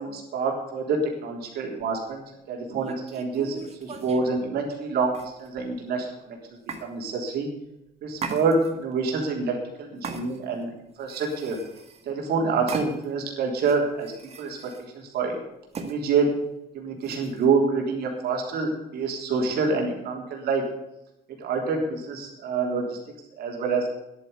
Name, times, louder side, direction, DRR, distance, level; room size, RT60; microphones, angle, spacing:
voice 1, 0.0-2.2 2.5-7.5 8.0-10.7 11.0-11.6 12.1-14.1 14.4-14.6 14.9-15.4 15.8-16.3 16.7-20.6 21.4-23.0 23.4-23.9, right 4 dB, 70° right, 1 dB, 3.6 m, -27 dB
sound 1, 1.8-2.0 2.7-4.3 5.1-5.7 6.7-6.9 8.2-8.9 10.0-10.6 11.0-12.1 12.7-13.2 13.6-14.9 15.7-16.0 17.0-17.5, right 4 dB, 40° right, 1.8 m, -38 dB
11.0 x 9.3 x 8.1 m, 0.89 s
cardioid pair, 110°, 17 cm